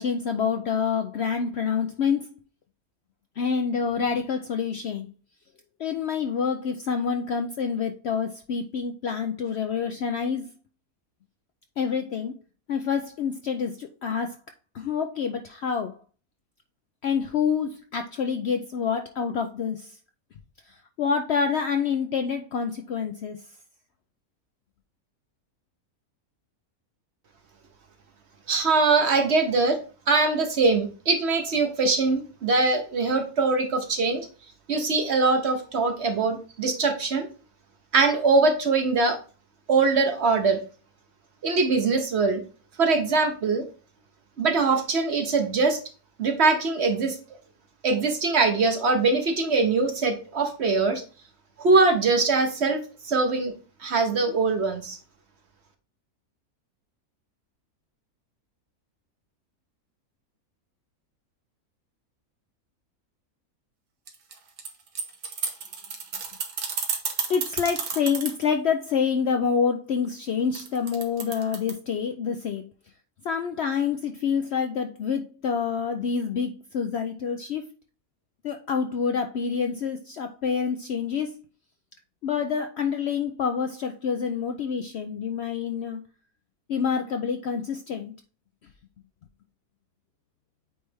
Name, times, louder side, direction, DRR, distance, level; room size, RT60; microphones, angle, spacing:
voice 1, 0.0-2.3 3.4-5.1 5.8-10.5 11.8-12.4 12.7-14.4 14.7-16.0 17.0-20.0 20.7-23.4 67.3-72.6 73.2-77.6 78.4-81.4 82.2-86.0 86.7-88.1, left 6 dB, 65° left, 0.6 m, -27 dB
voice 2, 28.5-29.8 30.1-34.3 34.7-37.3 37.9-39.2 39.7-40.6 41.4-42.4 42.8-43.6 44.4-45.8 46.2-47.2 47.8-51.0 51.6-53.5 53.8-55.0, right 3 dB, 50° right, 1.1 m, -22 dB
sound 1, 64.1-68.4 70.5-71.7, right 6 dB, 85° right, 1.6 m, -31 dB
8.7 x 3.2 x 3.3 m
omnidirectional pair, 1.6 m